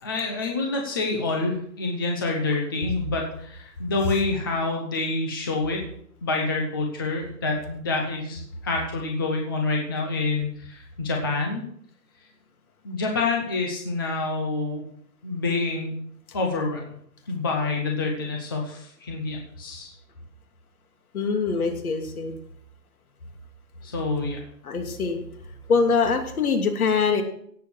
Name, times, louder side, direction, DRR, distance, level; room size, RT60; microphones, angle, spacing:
voice 1, 0.0-5.8 6.2-11.6 12.8-14.9 15.2-15.9 16.3-16.8 17.3-19.9 23.8-24.4, left 3 dB, 15° left, 1 dB, 0.7 m, -27 dB
voice 2, 21.1-22.3 24.6-25.2 25.7-27.2, left 5 dB, 60° left, 5 dB, 2.9 m, -23 dB
17.0 x 7.4 x 6.2 m, 0.65 s
hypercardioid pair, 170°, 50 cm